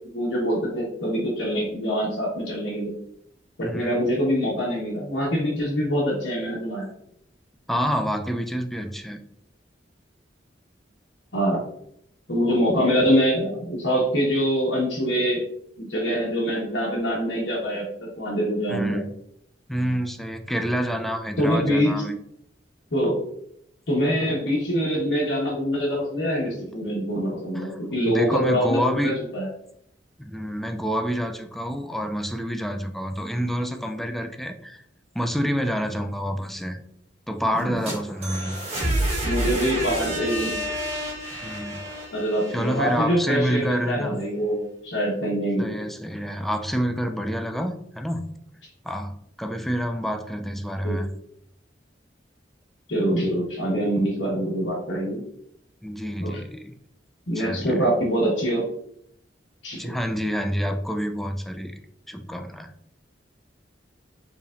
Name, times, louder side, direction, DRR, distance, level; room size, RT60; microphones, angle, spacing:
voice 1, 0.1-2.9 3.6-6.9 11.3-11.7 12.3-15.4 15.8-19.0 21.4-21.9 22.9-23.2 23.9-29.5 37.5-37.7 39.2-40.5 42.1-45.7 50.8-51.0 52.9-55.2 56.2-56.4 57.3-58.6 59.6-59.9, equal, 85° left, -6 dB, 1.2 m, -24 dB
voice 2, 3.6-4.1 7.7-9.2 18.7-19.1 19.7-22.2 27.5-27.8 28.1-29.2 30.2-34.8 35.2-36.8 37.3-38.6 41.4-41.8 42.5-44.2 45.6-48.3 48.8-51.1 55.8-56.7 57.4-57.8 59.8-61.7 62.1-62.7, equal, ahead, 6 dB, 0.3 m, -28 dB
sound 1, 37.6-43.5, right 1 dB, 35° right, 1.3 m, -29 dB
4.7 x 3.4 x 2.4 m, 0.72 s
head